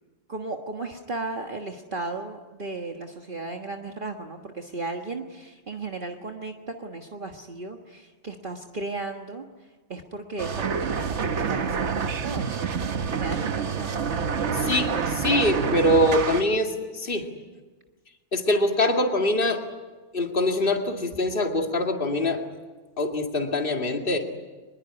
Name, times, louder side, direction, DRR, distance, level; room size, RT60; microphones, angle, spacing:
voice 1, 0.3-9.4 9.9-14.7, right 3 dB, 45° right, 3 dB, 1.7 m, -35 dB
sound 1, 10.4-16.4, right 6 dB, 70° right, 1.4 m, -27 dB
voice 2, 14.5-17.3 18.3-19.6 20.1-22.4 23.0-24.2, left 1 dB, 45° left, 3 dB, 2.4 m, -24 dB
24.0 x 21.5 x 9.8 m, 1.3 s
omnidirectional pair, 1.2 m